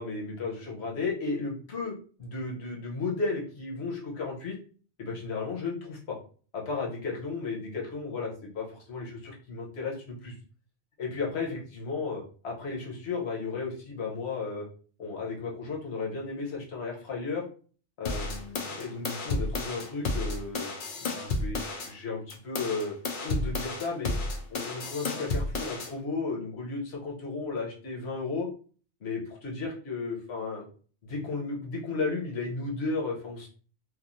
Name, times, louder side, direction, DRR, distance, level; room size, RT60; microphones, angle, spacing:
voice 1, 0.0-1.9 2.2-4.6 5.0-6.2 6.5-10.3 11.0-14.6 15.0-17.4 18.0-20.7 21.0-22.9 23.2-24.1 24.5-28.5 29.0-30.6 31.0-33.5, left 4 dB, 75° left, -2 dB, 1.2 m, -34 dB
sound 1, 18.1-21.9 22.3-25.9, left 3 dB, 60° left, 0.7 m, -32 dB
3.1 x 2.5 x 2.5 m, 0.41 s
omnidirectional pair, 1.1 m